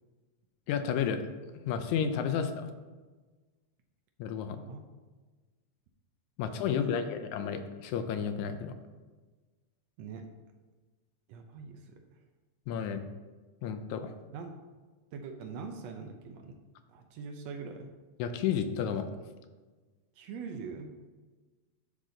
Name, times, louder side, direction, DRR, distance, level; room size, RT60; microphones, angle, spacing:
voice 1, 0.7-1.2 1.6-2.7 4.2-4.6 6.4-8.7 12.7-13.0 13.6-14.1 18.2-19.1, left 7 dB, 85° left, 8 dB, 2.0 m, -31 dB
voice 2, 4.5-4.8 6.4-7.2 10.0-10.3 11.3-12.2 14.3-14.6 15.1-16.6 16.9-17.9 20.1-21.0, right 5 dB, 75° right, 4 dB, 1.7 m, -43 dB
11.0 x 4.0 x 3.9 m, 1.3 s
omnidirectional pair, 3.3 m